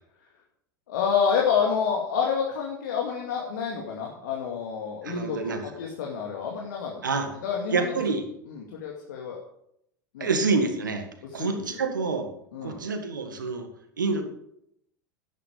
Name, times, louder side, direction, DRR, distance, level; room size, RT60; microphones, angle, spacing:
voice 1, 0.9-7.0 7.4-8.0 8.5-9.4 10.1-10.3 11.3-11.5 12.5-12.8, left 6 dB, 75° left, -1 dB, 2.3 m, -28 dB
voice 2, 5.0-5.6 7.0-7.3 7.7-8.3 10.2-11.1 11.3-12.3 12.6-13.7 14.0-14.2, right 4 dB, 85° right, 6 dB, 1.8 m, -27 dB
11.0 x 9.3 x 5.2 m, 0.74 s
hypercardioid pair, 80°, 10 cm